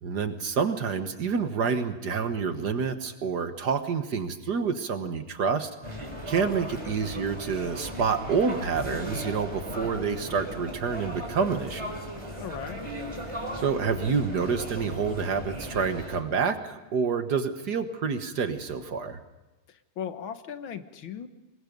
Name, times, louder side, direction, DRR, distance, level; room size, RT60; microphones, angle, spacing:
voice 1, 0.0-5.7 6.3-11.9 13.5-19.2, right 5 dB, 55° right, 8 dB, 1.7 m, -28 dB
sound 1, 5.8-16.2, equal, 15° right, 4.5 m, -37 dB
voice 2, 12.4-12.8 20.0-21.3, left 8 dB, 70° left, 9 dB, 1.9 m, -37 dB
27.0 x 21.5 x 5.3 m, 1.1 s
omnidirectional pair, 2.4 m